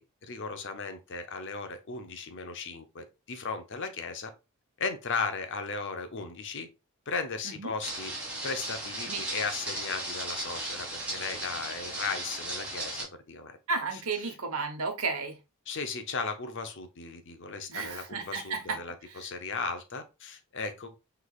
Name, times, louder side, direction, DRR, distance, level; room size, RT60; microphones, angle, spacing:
voice 1, 0.0-4.3 4.8-6.7 7.1-8.1 8.4-13.6 13.9-14.3 15.7-21.0, left 4 dB, 55° left, 0.7 m, -36 dB
sound 1, 7.8-13.0, right 2 dB, 5° right, 1.7 m, -36 dB
voice 2, 13.7-15.4 17.7-18.8, right 4 dB, 70° right, 1.1 m, -33 dB
6.1 x 3.3 x 2.4 m
head